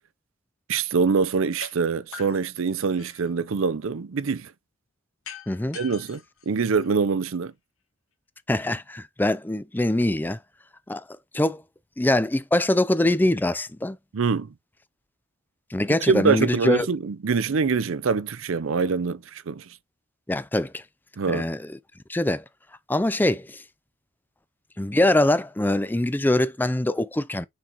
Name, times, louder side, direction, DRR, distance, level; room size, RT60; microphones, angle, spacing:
voice 1, 0.7-4.5 5.7-6.2 6.5-7.5 14.1-14.5 16.1-19.6 21.2-21.5, right 5 dB, 65° right, 0.5 m, -24 dB
sound 1, 1.6-1.7 2.1-3.3 5.2-7.2, left 6 dB, 80° left, 1.4 m, -43 dB
voice 2, 5.5-5.8 8.5-10.4 10.9-11.0 11.3-11.6 12.0-14.0 15.7-16.9 20.3-20.8 21.3-21.8 22.1-22.4 22.9-23.6 24.8-27.5, left 1 dB, 10° left, 0.4 m, -23 dB
6.0 x 4.5 x 3.9 m
head